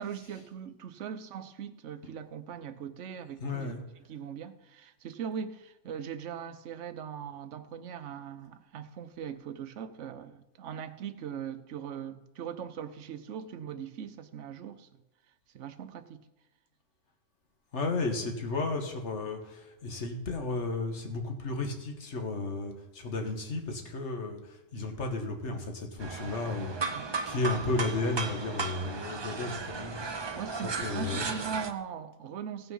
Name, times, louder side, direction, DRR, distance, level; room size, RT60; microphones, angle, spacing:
voice 1, 0.0-3.7 4.1-14.9 15.5-16.2 26.9-27.1 30.4-32.7, right 8 dB, 65° right, 1.1 m, -40 dB
voice 2, 3.4-3.8 17.7-26.7 27.3-29.9 30.6-31.3, left 3 dB, 60° left, 1.7 m, -33 dB
sound 1, 26.0-31.7, right 4 dB, 35° right, 0.4 m, -35 dB
16.5 x 5.9 x 5.5 m
omnidirectional pair, 1.4 m